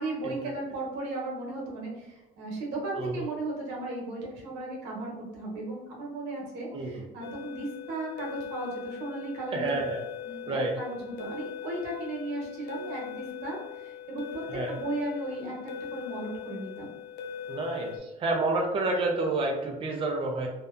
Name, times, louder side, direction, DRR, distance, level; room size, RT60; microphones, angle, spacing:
voice 1, 0.0-9.8 10.2-14.4 14.7-15.5 15.9-16.9, right 2 dB, 90° right, -2 dB, 0.9 m, -36 dB
voice 2, 2.9-3.3 6.7-7.0 9.5-10.0 10.5-10.7 14.5-14.7 17.5-20.5, right 2 dB, 30° right, 0 dB, 0.5 m, -29 dB
sound 1, 7.2-18.0, left 8 dB, 85° left, 0.4 m, -41 dB
2.7 x 2.1 x 2.4 m, 0.98 s
cardioid pair, 110°, 17 cm